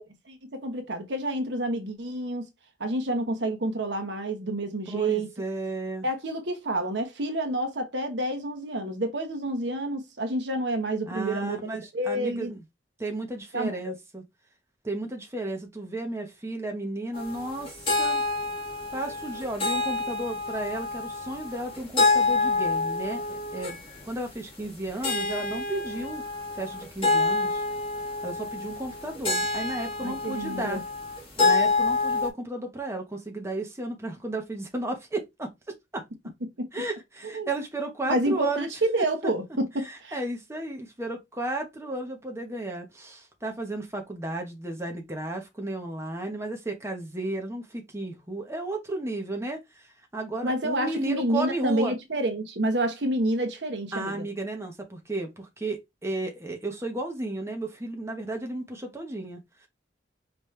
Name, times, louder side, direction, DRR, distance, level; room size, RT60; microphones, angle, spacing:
voice 1, 0.3-2.5 2.8-5.3 6.0-11.6 11.9-12.5 13.5-13.9 30.0-30.8 36.6-36.7 37.2-37.5 38.1-40.2 50.4-54.3, right 1 dB, 70° right, 1.1 m, -29 dB
voice 2, 4.9-6.1 11.1-12.6 13.0-14.2 14.8-18.2 18.9-23.8 24.1-26.2 26.6-27.6 28.2-30.8 31.4-35.5 35.9-36.0 36.7-38.7 39.0-39.3 39.8-51.9 53.9-59.7, right 2 dB, 15° right, 1.0 m, -33 dB
sound 1, 17.1-32.3, left 3 dB, 30° left, 1.9 m, -28 dB
5.2 x 3.1 x 3.2 m
head